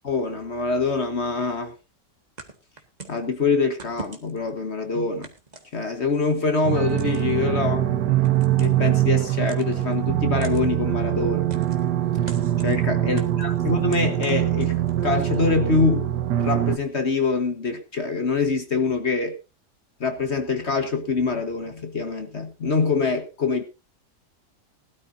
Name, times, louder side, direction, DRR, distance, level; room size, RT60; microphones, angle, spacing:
voice 1, 0.0-1.7 3.1-5.3 5.7-8.0 8.6-11.5 12.6-14.8 15.0-16.1 16.4-19.4 20.0-23.6, left 4 dB, 45° left, 7 dB, 1.5 m, -24 dB
sound 1, 2.4-3.2 3.8-4.5 5.2-6.2 6.9-7.4 8.2-8.9 9.5-10.0 10.4-10.7 11.5-11.9 12.3-12.8 13.2-15.0, right 3 dB, 25° right, 1.6 m, -42 dB
sound 2, 6.6-16.8, right 13 dB, 90° right, 1.5 m, -23 dB
19.0 x 13.0 x 2.6 m, 0.29 s
omnidirectional pair, 1.7 m